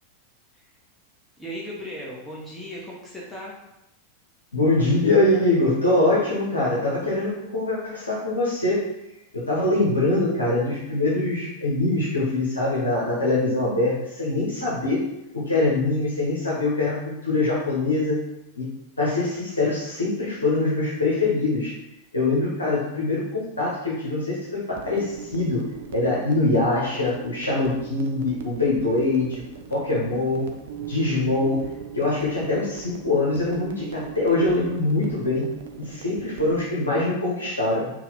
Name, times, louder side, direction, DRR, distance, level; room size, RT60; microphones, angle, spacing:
voice 1, 1.4-3.6, equal, 5° left, -6 dB, 0.9 m, -36 dB
voice 2, 4.5-8.8 9.3-15.0 15.3-18.2 18.6-18.7 19.0-21.7 22.1-25.6 25.9-29.4 29.7-30.5 30.9-31.6 31.9-35.5 35.8-37.9, left 2 dB, 75° left, -6 dB, 0.9 m, -23 dB
sound 1, 24.7-36.7, right 8 dB, 55° right, 0.4 m, -40 dB
4.1 x 2.3 x 4.0 m, 0.89 s
figure-of-eight pair, 90°, 0 cm